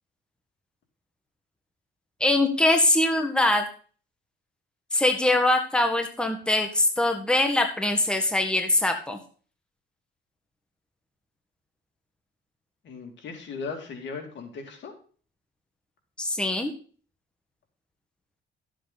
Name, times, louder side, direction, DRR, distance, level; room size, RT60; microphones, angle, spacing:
voice 1, 2.2-3.6 4.9-9.2 16.2-16.7, left 1 dB, 5° left, 4 dB, 1.6 m, -23 dB
voice 2, 12.8-14.9, left 4 dB, 65° left, 3 dB, 2.8 m, -37 dB
12.5 x 7.8 x 4.2 m, 0.41 s
cardioid pair, 90°, 20 cm